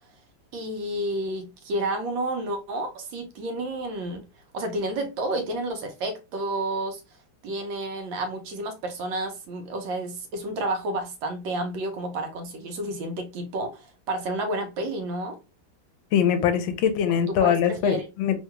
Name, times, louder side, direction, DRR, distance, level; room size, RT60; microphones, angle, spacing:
voice 1, 0.5-4.3 4.5-7.0 7.4-15.4 17.3-18.1, right 1 dB, 75° right, 1.4 m, -30 dB
voice 2, 16.1-18.4, left 8 dB, 80° left, 1.3 m, -22 dB
3.6 x 2.2 x 2.8 m
omnidirectional pair, 2.1 m